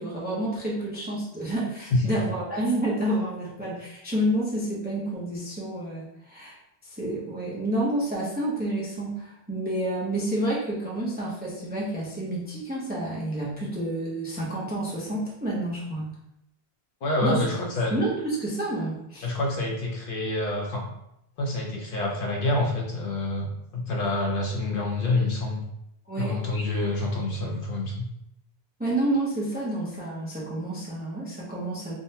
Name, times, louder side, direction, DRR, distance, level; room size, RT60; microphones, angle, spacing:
voice 1, 0.0-6.6 6.8-16.1 17.2-17.4 17.9-19.3 26.1-26.4 28.8-31.9, right 1 dB, 10° right, -6 dB, 0.5 m, -29 dB
voice 2, 17.0-18.0 19.2-20.9 21.4-25.6 26.2-28.1, left 2 dB, 60° left, -1 dB, 0.8 m, -27 dB
3.6 x 2.1 x 2.7 m, 0.81 s
omnidirectional pair, 1.0 m